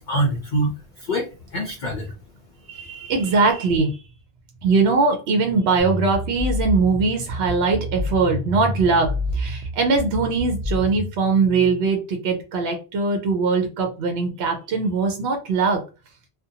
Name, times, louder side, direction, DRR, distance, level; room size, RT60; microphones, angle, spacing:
voice 1, 0.0-2.1, right 1 dB, 60° left, 1 dB, 0.5 m, -25 dB
voice 2, 2.7-4.0 4.6-15.8, right 4 dB, 70° right, 4 dB, 0.8 m, -21 dB
sound 1, 5.8-11.2, equal, 50° right, 0.5 m, -28 dB
2.5 x 2.1 x 2.7 m, 0.31 s
omnidirectional pair, 1.1 m